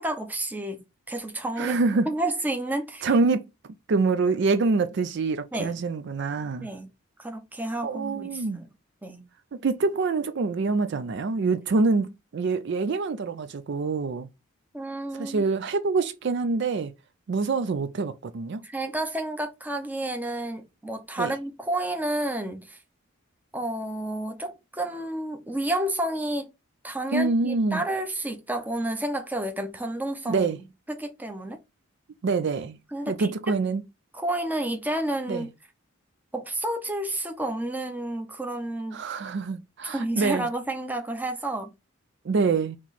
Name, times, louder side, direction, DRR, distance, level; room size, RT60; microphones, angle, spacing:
voice 1, 0.0-1.8 2.1-3.1 5.5-5.8 6.6-6.9 7.2-8.7 9.0-9.3 14.7-15.5 18.6-22.8 23.5-26.5 26.8-30.5 30.9-31.6 32.9-33.5 34.1-35.5 36.3-39.0 39.8-41.7, right 1 dB, 10° right, 0.7 m, -30 dB
voice 2, 1.6-2.1 3.0-3.4 3.9-6.7 7.8-8.6 9.5-14.3 15.1-16.9 17.3-18.6 21.2-21.3 27.1-27.8 30.3-30.6 32.2-32.8 33.1-33.8 35.3-35.5 38.9-40.5 42.2-42.8, right 4 dB, 55° right, 0.4 m, -25 dB
4.3 x 3.0 x 4.1 m
head